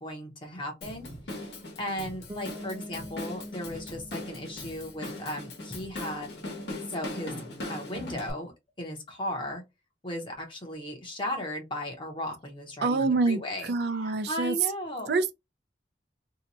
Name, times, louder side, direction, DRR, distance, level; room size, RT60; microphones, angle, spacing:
voice 1, 0.0-6.3 6.9-7.3 7.6-8.5 8.8-9.6 10.0-13.7 14.0-15.1, left 1 dB, 30° left, 0.8 m, -36 dB
Drum kit / Drum, 0.8-8.3, left 1 dB, 70° left, 1.1 m, -40 dB
Bass guitar, 2.3-6.0, left 1 dB, 20° right, 0.8 m, -46 dB
voice 2, 12.8-14.6 15.1-15.3, right 3 dB, 70° right, 0.4 m, -26 dB
2.8 x 2.2 x 4.0 m
head